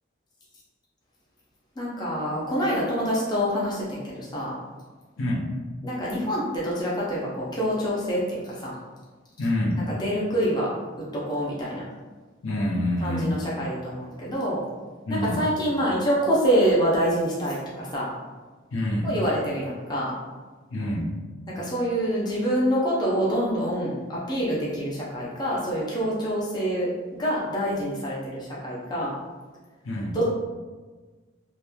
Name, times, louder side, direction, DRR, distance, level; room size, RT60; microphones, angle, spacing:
voice 1, 1.8-4.5 5.8-8.7 9.9-10.7 11.1-11.8 13.0-14.6 15.1-18.1 19.0-20.1 21.5-26.9 27.2-29.1 30.1-30.3, equal, 20° left, -6 dB, 0.4 m, -26 dB
voice 2, 5.2-5.5 9.4-9.8 12.4-13.3 15.1-15.4 18.7-19.1 20.7-21.1 29.8-30.2, left 1 dB, 85° left, -3 dB, 0.6 m, -26 dB
2.9 x 2.1 x 2.2 m, 1.3 s
head